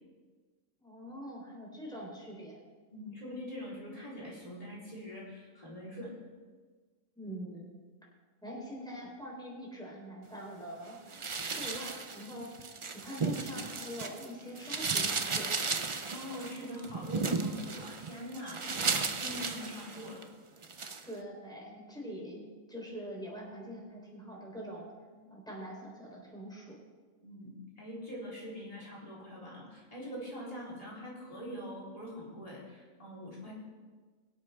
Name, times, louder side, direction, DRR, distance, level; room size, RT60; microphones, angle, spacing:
voice 1, 0.8-2.6 7.2-7.7 8.4-11.0 11.3-12.6 12.9-15.5 21.0-24.9 25.3-26.8, equal, 5° left, -3 dB, 3.7 m, -44 dB
voice 2, 2.9-6.2 16.1-20.2 25.1-25.3 27.2-33.5, equal, 25° left, -6 dB, 3.9 m, -43 dB
sound 1, 11.1-14.3 14.5-20.2 20.6-21.0, right 4 dB, 35° right, 0.5 m, -35 dB
23.5 x 8.1 x 3.5 m, 1.4 s
omnidirectional pair, 1.4 m